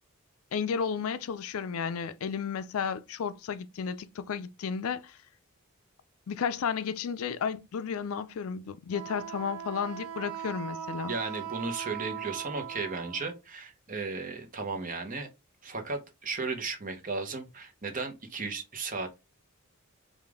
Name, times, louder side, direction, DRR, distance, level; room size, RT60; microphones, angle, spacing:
voice 1, 0.5-5.2 6.3-11.1, left 6 dB, 70° left, 0.4 m, -33 dB
Wind instrument woodwind instrument, 8.9-13.4, right 9 dB, 85° right, 0.6 m, -39 dB
voice 2, 11.1-15.3 15.6-19.1, right 4 dB, 35° right, 0.9 m, -35 dB
5.0 x 2.5 x 3.5 m
head